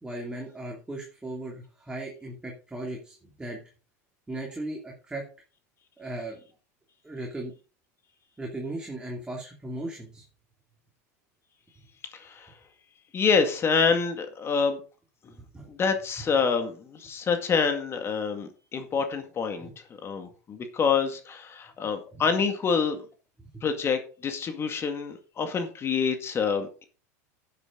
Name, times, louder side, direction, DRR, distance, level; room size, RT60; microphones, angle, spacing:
voice 1, 0.0-3.6 4.3-5.3 6.0-6.4 7.0-7.5 8.4-10.2 15.3-15.7 19.6-19.7 22.1-22.2 23.4-23.6, right 1 dB, 10° right, -1 dB, 2.9 m, -37 dB
voice 2, 12.1-12.5 13.1-14.8 15.7-19.7 20.0-23.0 23.6-26.8, left 5 dB, 30° left, 7 dB, 2.0 m, -27 dB
11.0 x 8.4 x 3.9 m, 0.35 s
hypercardioid pair, 105°, 9 cm